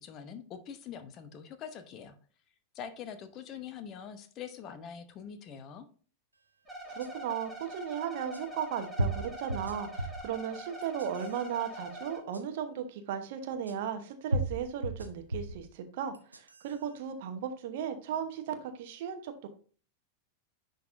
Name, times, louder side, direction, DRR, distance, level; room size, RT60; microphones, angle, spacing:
voice 1, 0.0-2.1 2.7-5.8, left 8 dB, 35° left, 9 dB, 0.8 m, -44 dB
sound 1, 6.7-12.2, right 1 dB, 5° right, 2.5 m, -44 dB
voice 2, 6.9-19.5, right 8 dB, 50° right, 7 dB, 1.0 m, -36 dB
sound 2, 7.0-7.1 8.3-8.4 9.0-10.3 10.8-11.4 12.3-12.4 13.7-13.8 14.3-15.6 16.1-16.7, right 1 dB, 80° right, 0.7 m, -34 dB
10.0 x 4.0 x 2.6 m, 0.41 s
figure-of-eight pair, 90°, 0 cm